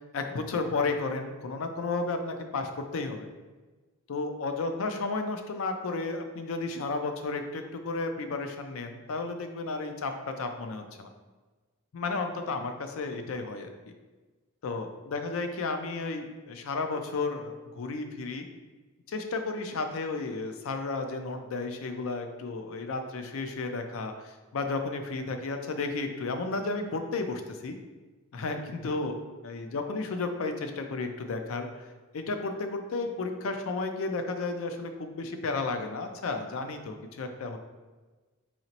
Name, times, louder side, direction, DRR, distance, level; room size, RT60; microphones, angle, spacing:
voice 1, 0.1-3.3 4.1-11.1 11.9-13.9 14.6-18.5 19.1-27.8 28.3-29.2 29.4-31.7 32.1-37.6, left 3 dB, 75° left, 6 dB, 0.4 m, -33 dB
4.2 x 2.9 x 2.8 m, 1.3 s
head